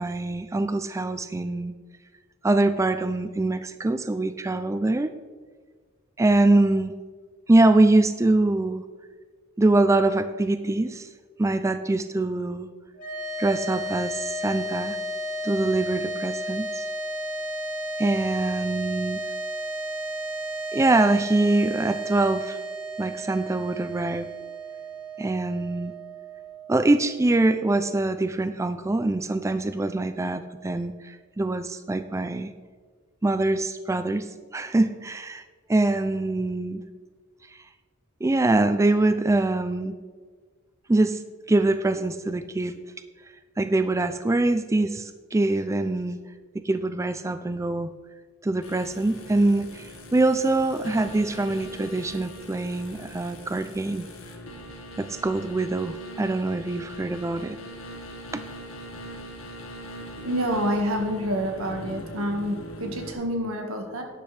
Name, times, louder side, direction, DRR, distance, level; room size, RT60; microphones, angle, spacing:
voice 1, 0.0-1.7 2.4-5.1 6.2-6.9 7.5-8.8 9.6-11.1 11.4-12.7 13.4-15.0 15.4-16.9 18.0-19.2 20.7-22.6 23.0-24.3 25.2-25.9 26.7-32.5 33.2-35.4 35.7-36.8 37.5-37.6 38.2-39.9 40.9-41.2 41.5-42.8 43.6-46.2 46.5-47.9 48.4-54.1 55.0-57.6 58.3-58.4, right 2 dB, 15° right, 10 dB, 0.3 m, -24 dB
sound 1, 12.9-27.4, right 1 dB, 40° left, 3.2 m, -33 dB
sound 2, 48.6-63.1, equal, 75° left, 1.8 m, -41 dB
voice 2, 60.2-64.0, equal, 90° right, 3 dB, 1.8 m, -28 dB
12.0 x 10.0 x 3.4 m, 1.5 s
head